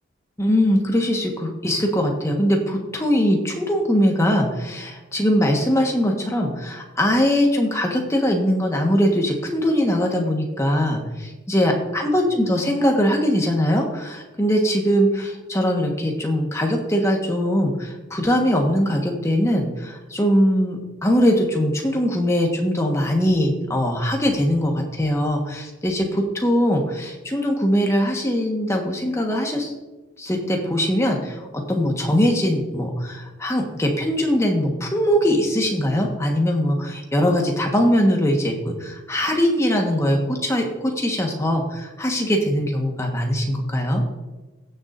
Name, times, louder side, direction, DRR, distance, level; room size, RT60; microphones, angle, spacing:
voice 1, 0.4-29.7 30.2-44.0, equal, 15° left, 1 dB, 1.4 m, -21 dB
17.0 x 7.1 x 2.6 m, 1.2 s
head